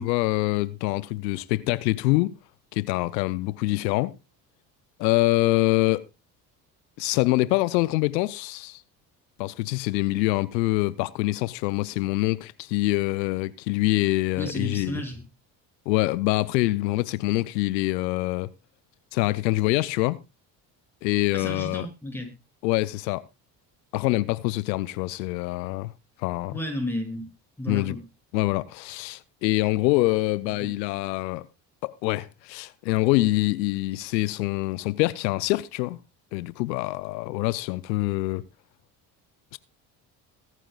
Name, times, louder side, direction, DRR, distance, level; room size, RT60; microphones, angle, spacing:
voice 1, 0.0-2.3 2.7-4.1 5.0-6.0 7.0-8.8 9.4-15.0 15.9-18.5 19.1-20.2 21.0-21.9 22.6-23.2 23.9-25.9 26.2-26.5 27.7-28.0 28.3-31.5 31.8-36.0 36.3-38.4 39.5-39.6, left 19 dB, 85° left, 0.6 m, -25 dB
voice 2, 14.4-15.2 21.3-22.3 26.5-27.2 27.6-28.0 30.6-30.7, left 1 dB, 5° left, 7.1 m, -32 dB
23.0 x 9.1 x 2.3 m
hypercardioid pair, 60°, 49 cm